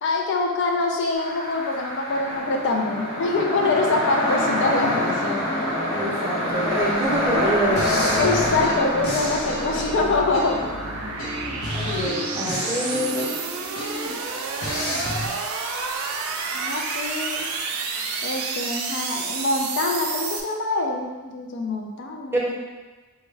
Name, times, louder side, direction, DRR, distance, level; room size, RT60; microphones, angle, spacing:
voice 1, 0.0-5.4 8.2-10.6 11.8-12.2 16.5-17.5 18.2-22.4, left 3 dB, 60° left, 1 dB, 0.4 m, -25 dB
sound 1, 1.1-12.5, left 1 dB, 30° left, 0.9 m, -27 dB
voice 2, 5.9-8.1 11.7-13.3 22.3-22.5, right 1 dB, 10° right, -5 dB, 0.7 m, -26 dB
sound 2, 7.0-20.4, right 4 dB, 70° right, 0.4 m, -31 dB
sound 3, 7.8-10.8 11.2-14.2 14.6-15.3, left 1 dB, 85° left, 0.9 m, -31 dB
4.3 x 2.3 x 3.2 m, 1.3 s
head